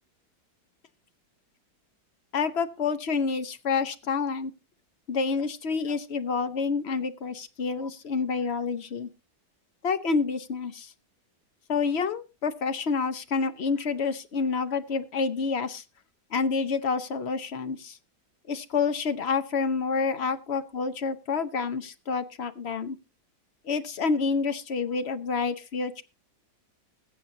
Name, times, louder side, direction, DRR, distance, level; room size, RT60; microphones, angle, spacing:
voice 1, 2.3-4.5 5.1-9.1 9.8-10.9 11.7-15.8 16.3-18.0 18.5-23.0 23.6-26.0, left 5 dB, 45° left, 10 dB, 1.0 m, -28 dB
21.5 x 7.8 x 2.7 m, 0.27 s
omnidirectional pair, 1.9 m